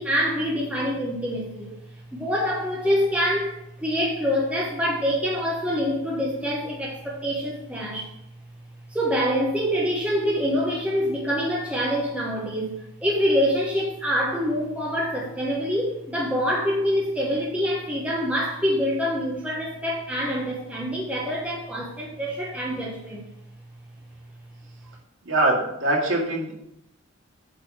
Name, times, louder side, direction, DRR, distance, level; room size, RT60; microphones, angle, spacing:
voice 1, 0.0-1.7 2.1-8.1 8.9-23.2, equal, 5° right, -4 dB, 1.1 m, -25 dB
voice 2, 25.2-26.6, right 2 dB, 75° right, -2 dB, 2.2 m, -23 dB
8.8 x 4.2 x 6.3 m, 0.79 s
head